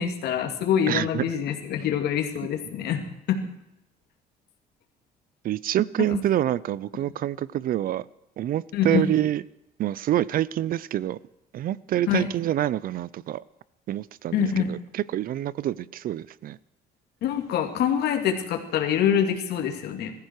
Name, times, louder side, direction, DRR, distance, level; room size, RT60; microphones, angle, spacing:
voice 1, 0.0-3.4 6.1-6.2 8.7-9.1 12.1-12.3 14.3-14.7 17.2-20.1, left 8 dB, 75° left, 4 dB, 2.6 m, -25 dB
voice 2, 0.9-1.3 5.4-8.1 8.4-9.4 9.8-11.2 11.5-13.4 13.9-16.6, right 12 dB, 60° right, 21 dB, 0.6 m, -27 dB
21.0 x 14.5 x 4.8 m, 0.85 s
cardioid pair, 110°, 17 cm